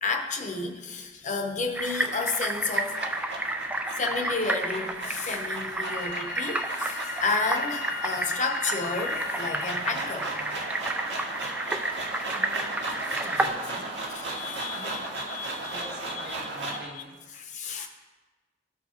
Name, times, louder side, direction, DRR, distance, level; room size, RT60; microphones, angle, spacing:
voice 1, 0.0-3.0 3.9-10.3 11.8-11.9 12.9-13.0 14.1-15.8 17.3-17.9, left 4 dB, 40° left, 4 dB, 0.7 m, -31 dB
sound 1, 1.8-13.5, right 2 dB, 10° right, 0.3 m, -31 dB
sound 2, 2.3-16.9, right 2 dB, 80° right, 1.7 m, -36 dB
Wind instrument woodwind instrument, 5.8-9.8, left 15 dB, 75° left, 0.3 m, -39 dB
voice 2, 12.3-14.1 14.7-15.1 15.6-17.2, right 1 dB, 65° right, -6 dB, 1.2 m, -44 dB
14.0 x 4.6 x 2.8 m, 1.3 s
head